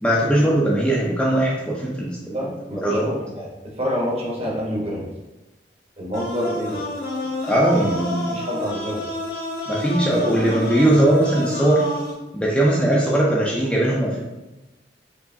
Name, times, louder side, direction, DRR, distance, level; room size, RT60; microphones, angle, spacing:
voice 1, 0.0-2.2 2.4-3.1 7.4-8.4 9.7-11.8 12.3-14.2, right 1 dB, 5° left, -5 dB, 0.5 m, -20 dB
voice 2, 2.2-3.5 3.8-5.0 6.0-6.8 8.3-9.0, equal, 35° right, -4 dB, 1.0 m, -27 dB
sound 1, 6.1-12.1, left 1 dB, 50° left, 1.1 m, -29 dB
4.6 x 2.9 x 2.7 m, 1.0 s
head